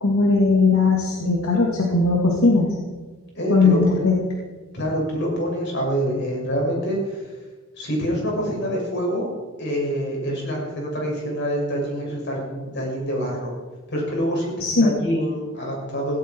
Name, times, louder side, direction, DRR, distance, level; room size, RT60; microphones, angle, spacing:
voice 1, 0.0-2.7 3.5-4.2 14.6-14.9, left 3 dB, 80° left, -1 dB, 2.4 m, -18 dB
voice 2, 3.3-4.1 4.7-7.2 7.8-9.3 9.6-13.5 13.9-16.2, equal, 55° left, -2 dB, 6.6 m, -26 dB
17.0 x 17.0 x 4.6 m, 1.3 s
head